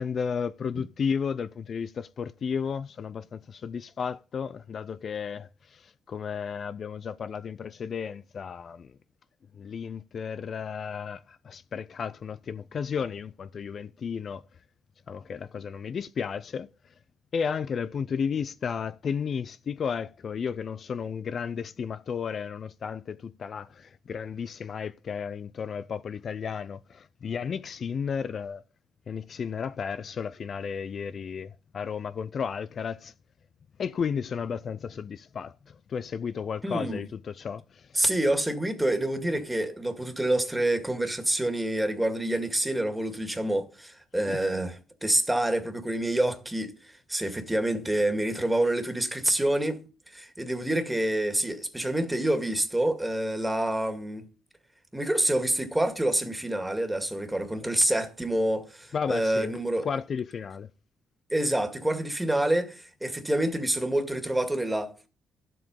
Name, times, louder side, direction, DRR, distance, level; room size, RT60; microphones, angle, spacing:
voice 1, 0.0-9.0 9.5-14.4 15.1-16.7 17.3-28.6 29.1-33.1 33.8-38.0 44.3-44.4 58.9-59.5 59.8-60.7, left 6 dB, 50° left, 0.4 m, -33 dB
voice 2, 36.6-37.0 37.9-49.8 50.1-54.2 54.9-59.9 61.3-64.9, right 1 dB, 10° right, 2.0 m, -27 dB
12.0 x 7.7 x 5.3 m
cardioid pair, 90°, 0 cm